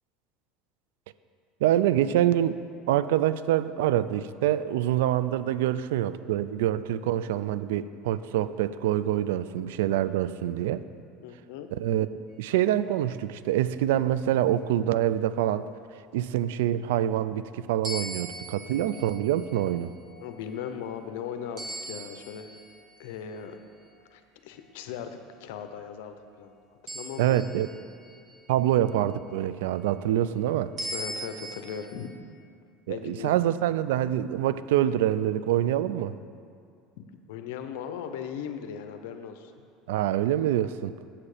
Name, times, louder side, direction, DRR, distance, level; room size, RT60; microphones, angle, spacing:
voice 1, 1.6-2.6 2.9-10.8 11.7-12.1 12.4-15.7 16.1-19.9 27.2-27.7 28.5-30.7 32.9-36.2 39.9-40.9, right 12 dB, 90° right, 14 dB, 0.3 m, -25 dB
voice 2, 11.2-11.7 20.2-22.5 23.0-23.6 24.1-26.5 26.9-27.4 30.9-32.1 32.9-33.4 37.0-39.5, left 8 dB, 80° left, 8 dB, 0.7 m, -38 dB
sound 1, 17.8-23.4 26.9-28.9 30.8-32.1, right 1 dB, 45° right, 1.5 m, -40 dB
8.6 x 7.4 x 4.9 m, 2.3 s
supercardioid pair, 125°, 0 cm